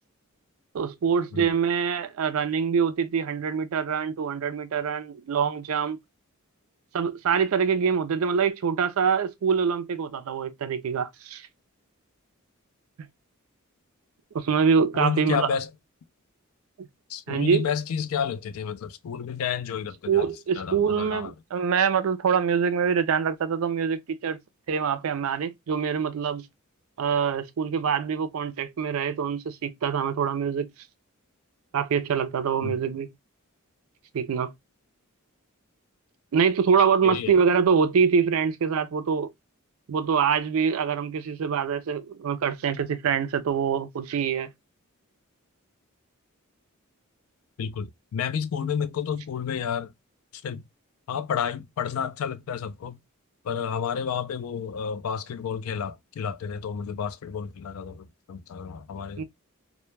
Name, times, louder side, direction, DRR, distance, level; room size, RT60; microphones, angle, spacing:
voice 1, 0.7-6.0 6.9-11.5 14.3-15.5 16.8-16.9 17.3-17.7 20.1-24.4 24.7-26.4 27.0-30.7 31.7-33.1 34.1-34.5 36.3-39.3 39.9-44.5 59.2-59.3, right 6 dB, 75° right, 0.4 m, -25 dB
voice 2, 14.9-15.7 17.1-20.3 20.5-21.3 32.6-32.8 37.0-37.4 47.6-49.9 50.4-50.6 51.1-53.0 53.4-59.2, left 7 dB, 75° left, 0.3 m, -30 dB
2.1 x 2.1 x 3.1 m
head